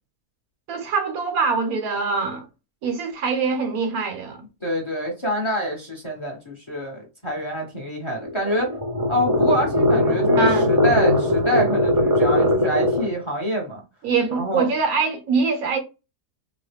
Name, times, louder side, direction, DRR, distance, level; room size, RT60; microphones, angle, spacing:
voice 1, 0.7-2.5 2.8-4.4 10.4-10.7 14.0-15.8, right 4 dB, 70° right, 1.2 m, -23 dB
voice 2, 4.6-8.7 9.1-13.8 14.3-14.7, equal, 25° left, 0.8 m, -26 dB
sound 1, 8.2-13.2, left 1 dB, 20° right, 0.6 m, -20 dB
3.9 x 2.0 x 3.2 m
omnidirectional pair, 1.6 m